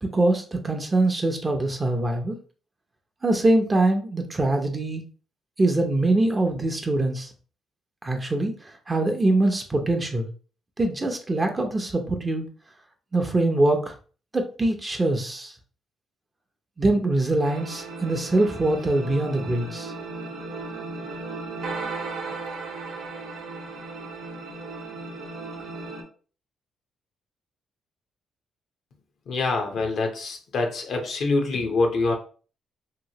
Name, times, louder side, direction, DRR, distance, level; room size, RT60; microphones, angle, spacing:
voice 1, 0.0-2.4 3.2-5.0 5.6-7.3 8.0-10.3 10.8-12.5 13.1-13.9 14.3-15.5 16.8-19.9, right 2 dB, 20° right, 3 dB, 0.6 m, -23 dB
sound 1, 17.4-26.0, right 3 dB, 85° right, 0.7 m, -36 dB
voice 2, 29.3-32.1, left 3 dB, 65° left, 3 dB, 0.7 m, -25 dB
2.9 x 2.7 x 2.8 m, 0.39 s
cardioid pair, 90°, 0 cm